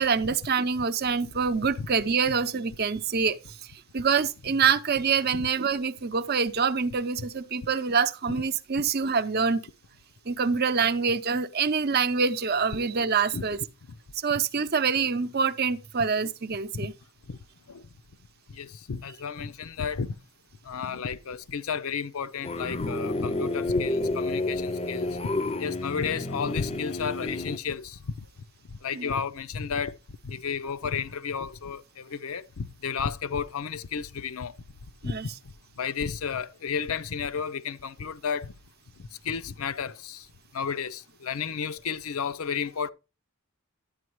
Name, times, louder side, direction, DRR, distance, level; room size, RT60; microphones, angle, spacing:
voice 1, 0.0-3.4 3.9-9.6 10.3-13.6 14.2-16.9 28.9-29.1 35.0-35.2, right 5 dB, 45° right, 0.6 m, -25 dB
voice 2, 18.5-20.2 20.6-25.3 25.6-28.1 28.7-30.0 30.2-34.5 35.0-35.1 35.8-38.5 39.0-40.3 40.5-42.9, left 6 dB, 75° left, 0.6 m, -32 dB
sound 1, 22.4-27.6, left 2 dB, 25° left, 0.5 m, -30 dB
11.0 x 8.5 x 3.0 m
head